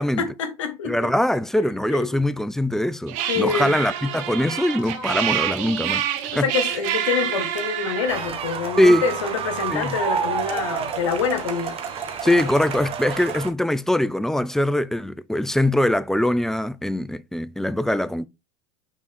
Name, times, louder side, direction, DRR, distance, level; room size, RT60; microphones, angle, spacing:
voice 1, 0.0-1.1 1.6-2.3 3.3-3.7 6.3-11.8 12.2-12.5, left 6 dB, 85° left, 1.4 m, -27 dB
voice 2, 0.8-6.0 6.3-6.5 8.8-9.0 9.7-10.0 12.2-18.3, left 1 dB, 5° left, 0.4 m, -22 dB
sound 1, 3.1-8.3, right 10 dB, 55° right, 1.2 m, -27 dB
sound 2, 3.7-13.5, right 4 dB, 85° right, 2.6 m, -44 dB
sound 3, 8.1-13.5, right 7 dB, 40° right, 1.3 m, -29 dB
6.1 x 3.8 x 4.4 m
hypercardioid pair, 100°, 16 cm